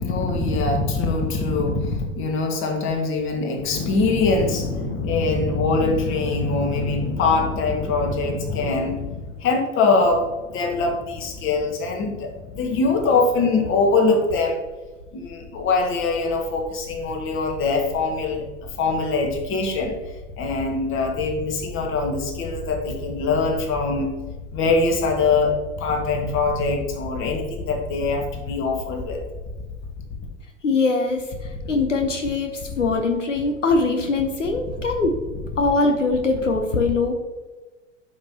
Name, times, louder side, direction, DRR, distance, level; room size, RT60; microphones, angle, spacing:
voice 1, 0.0-14.6 15.1-20.0 20.4-24.1 24.5-29.2, left 3 dB, 35° left, 3 dB, 1.8 m, -23 dB
voice 2, 30.6-35.2 35.6-37.1, left 3 dB, 80° left, 4 dB, 1.0 m, -22 dB
11.5 x 6.0 x 2.9 m, 1.2 s
figure-of-eight pair, 90°, 37 cm